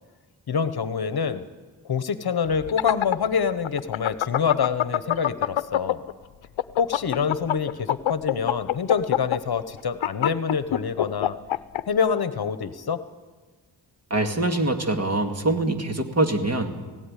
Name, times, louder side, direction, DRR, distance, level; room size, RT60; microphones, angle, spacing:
voice 1, 0.5-1.5 1.9-6.0 6.8-11.3 11.8-13.0, left 6 dB, 55° left, 12 dB, 1.1 m, -26 dB
sound 1, 2.5-6.1 6.4-11.8, left 12 dB, 85° left, 0.8 m, -24 dB
voice 2, 14.1-16.8, right 2 dB, 35° right, 5 dB, 2.1 m, -24 dB
17.0 x 17.0 x 10.0 m, 1.3 s
wide cardioid pair, 115°, 46 cm